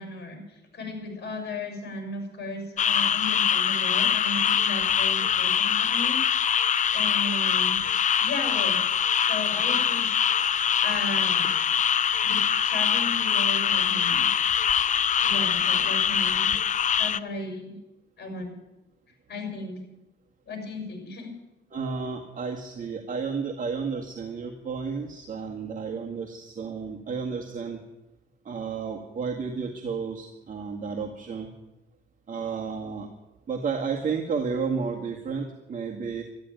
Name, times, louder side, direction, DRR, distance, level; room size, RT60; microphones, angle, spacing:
voice 1, 0.0-6.2 6.9-7.9 8.2-8.8 9.2-10.1 10.8-11.5 12.2-14.3 15.2-16.5 17.0-17.8 18.2-18.5 19.3-19.8 20.4-21.3, left 2 dB, 55° left, 5 dB, 6.6 m, -35 dB
sound 1, 2.8-17.2, left 8 dB, 40° left, 0.5 m, -23 dB
voice 2, 21.7-27.8 28.4-31.5 32.3-33.1 33.5-36.2, right 5 dB, 40° right, 0 dB, 1.9 m, -32 dB
13.0 x 11.5 x 9.2 m, 0.97 s
cardioid pair, 90°, 20 cm